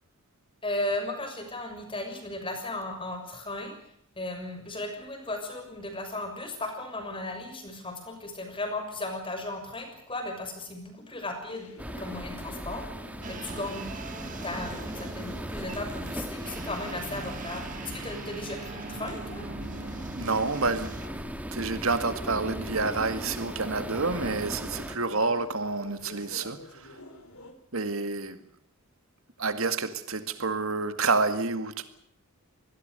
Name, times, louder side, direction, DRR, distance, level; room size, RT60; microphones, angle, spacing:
voice 1, 0.6-3.7 4.2-11.7 12.0-12.8 13.3-19.5, left 2 dB, 25° left, 6.6 m, -36 dB
sound 1, 11.5-27.5, left 1 dB, 75° left, 4.4 m, -48 dB
sound 2, 11.8-25.0, equal, 5° right, 1.6 m, -38 dB
sound 3, 13.2-21.1, right 3 dB, 35° right, 1.7 m, -42 dB
voice 2, 20.2-26.9 27.7-28.4 29.4-31.9, right 3 dB, 65° right, 2.0 m, -29 dB
26.0 x 20.0 x 6.8 m
head